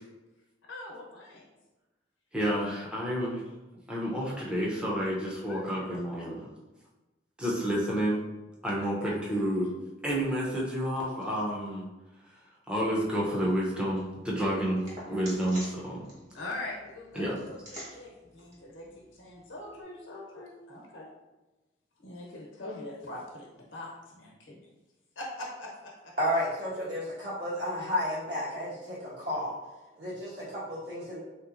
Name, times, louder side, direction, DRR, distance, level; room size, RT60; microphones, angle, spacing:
voice 1, 0.7-1.4 5.4-5.8 9.0-9.2 14.8-14.9 16.3-21.1 22.0-24.6 25.2-26.1, left 2 dB, 85° left, -2 dB, 0.9 m, -42 dB
voice 2, 2.3-3.4 3.9-6.5 7.4-8.2 8.6-9.7 10.0-11.8 12.7-16.0 17.1-17.3, equal, 5° right, -5 dB, 0.6 m, -30 dB
sound 1, 13.0-19.8, equal, 40° right, 1.4 m, -50 dB
voice 3, 26.2-29.5 30.0-31.2, equal, 65° right, -9 dB, 1.4 m, -32 dB
3.3 x 2.9 x 2.5 m, 1.1 s
head